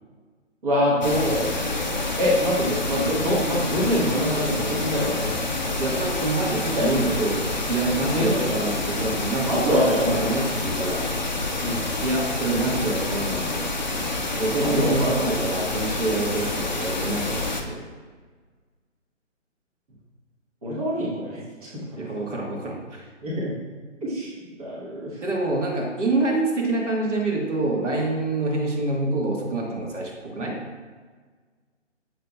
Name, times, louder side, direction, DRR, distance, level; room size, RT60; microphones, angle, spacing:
voice 1, 0.6-5.4 5.8-6.3 6.8-6.9 8.1-8.3 9.5-10.2 11.6-11.8 14.6-15.1 20.6-21.8 23.2-23.5 24.0-24.3 24.6-25.2, equal, 30° right, -7 dB, 1.2 m, -25 dB
sound 1, 1.0-17.6, left 2 dB, 40° left, 0.4 m, -28 dB
voice 2, 5.8-11.0 12.0-13.7 14.3-17.8 21.9-23.1 25.2-30.6, right 2 dB, 65° right, -1 dB, 1.5 m, -26 dB
7.3 x 5.6 x 2.3 m, 1.5 s
hypercardioid pair, 170°, 38 cm